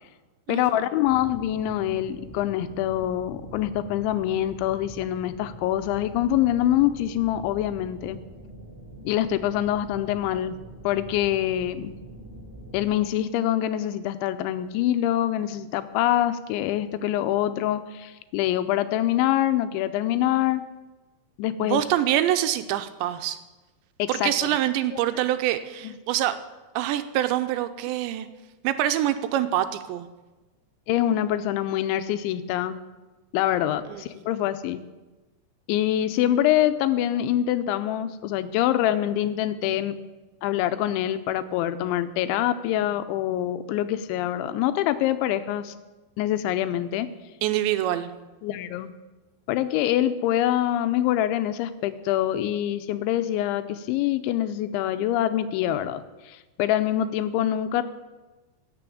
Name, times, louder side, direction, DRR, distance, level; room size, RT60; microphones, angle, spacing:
voice 1, 0.5-8.2 9.0-10.6 10.8-12.0 12.7-20.6 21.4-21.8 24.0-24.3 24.9-25.0 25.8-25.9 30.9-32.8 33.3-34.8 35.7-40.0 40.4-45.7 46.2-47.1 48.4-48.9 49.5-57.8, left 12 dB, 90° left, 11 dB, 3.1 m, -25 dB
sound 1, 1.0-12.9, right 1 dB, 5° right, 4.5 m, -44 dB
voice 2, 21.6-23.4 24.1-26.4 26.7-28.3 28.6-30.1 33.9-34.0 47.4-48.1, right 12 dB, 85° right, 10 dB, 2.9 m, -25 dB
16.0 x 7.0 x 8.5 m, 1.1 s
omnidirectional pair, 5.3 m